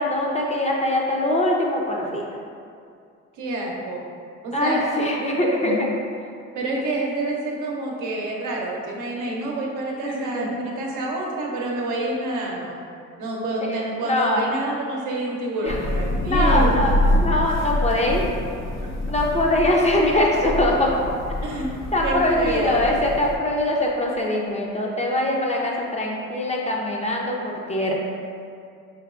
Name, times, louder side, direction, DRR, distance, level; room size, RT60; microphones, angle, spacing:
voice 1, 0.0-2.2 4.5-5.9 10.0-10.5 13.6-14.4 15.6-15.8 16.3-18.3 19.1-21.0 21.9-27.9, left 1 dB, 20° left, -1 dB, 0.5 m, -22 dB
voice 2, 3.3-4.1 4.4-4.9 5.6-5.8 6.5-12.8 13.2-16.7 21.4-21.7 22.0-22.8, right 2 dB, 80° right, -2 dB, 0.7 m, -28 dB
Thunder / Rain, 15.6-23.3, left 1 dB, 60° left, 0.6 m, -26 dB
4.6 x 2.9 x 2.4 m, 2.3 s
cardioid pair, 90°, 30 cm